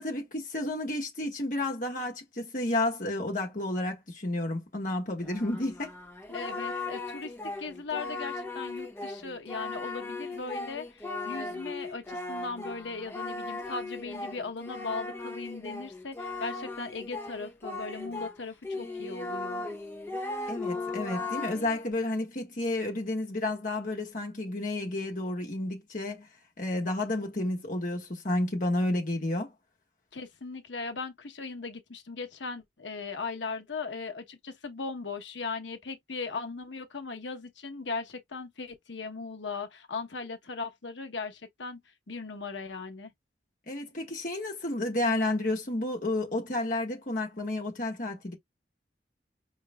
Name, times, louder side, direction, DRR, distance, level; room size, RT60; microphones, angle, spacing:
voice 1, 0.0-5.9 20.5-26.3 26.6-29.5 43.7-48.3, left 2 dB, 45° left, 1.3 m, -31 dB
Singing, 5.2-18.4 18.6-21.9, left 3 dB, 15° left, 0.8 m, -37 dB
voice 2, 6.3-19.7 30.1-41.8 42.1-43.1, left 4 dB, 85° left, 1.0 m, -38 dB
4.9 x 3.2 x 2.2 m
head